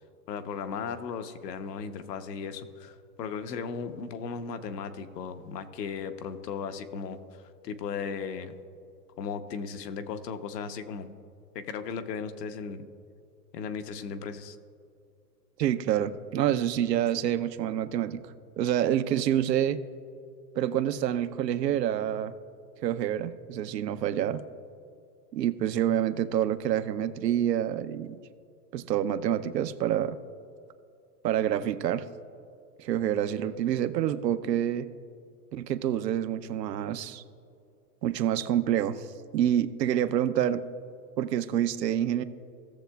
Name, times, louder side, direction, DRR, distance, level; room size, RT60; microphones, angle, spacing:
voice 1, 0.3-7.2 7.6-8.5 9.2-11.1 11.5-12.8 13.5-14.6, left 6 dB, 80° left, 9 dB, 0.9 m, -36 dB
voice 2, 15.6-18.2 18.6-19.8 20.6-22.3 22.8-24.4 25.3-28.2 28.7-30.2 31.2-32.1 32.8-34.9 35.5-37.2 38.0-39.1 39.3-40.6 41.2-42.2, right 10 dB, 90° right, 12 dB, 0.7 m, -27 dB
17.0 x 7.1 x 2.3 m, 2.5 s
hypercardioid pair, 120°, 49 cm